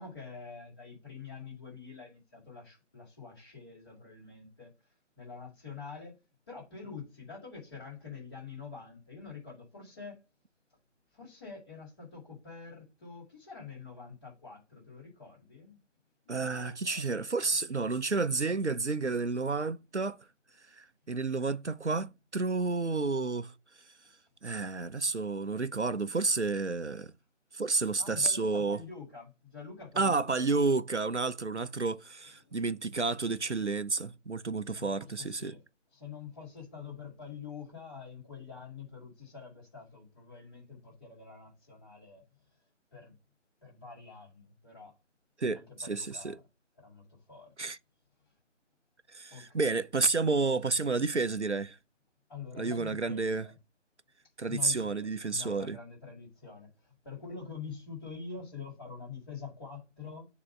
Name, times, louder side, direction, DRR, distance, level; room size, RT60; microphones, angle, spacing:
voice 1, 0.0-6.1 6.5-10.2 11.1-15.8 16.2-17.5 28.0-30.3 32.4-32.6 34.8-35.6 35.9-42.2 42.9-43.1 43.6-44.9 45.5-46.4 46.8-47.5 49.3-49.8 52.3-53.5 54.5-60.3, left 5 dB, 20° left, 5.1 m, -46 dB
voice 2, 16.3-20.2 20.7-23.5 24.4-27.1 27.5-28.8 30.0-35.5 45.4-46.4 47.6-47.8 49.1-51.8 52.6-53.5 54.4-55.8, right 3 dB, 65° right, 0.9 m, -30 dB
7.4 x 4.2 x 6.0 m
figure-of-eight pair, 160°, 37 cm